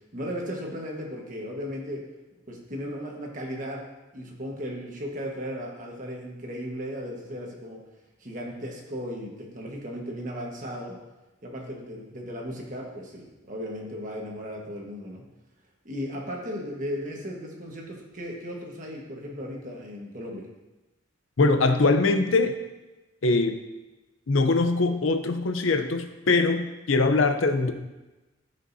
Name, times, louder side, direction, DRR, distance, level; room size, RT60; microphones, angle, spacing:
voice 1, 0.1-2.0 2.5-3.8 4.1-7.8 8.2-11.0 11.4-15.2 15.8-20.5, equal, 40° right, -1 dB, 1.4 m, -36 dB
voice 2, 21.4-22.6 23.2-23.6 24.3-27.7, left 3 dB, 85° left, 7 dB, 0.7 m, -22 dB
14.0 x 5.2 x 2.7 m, 1.1 s
head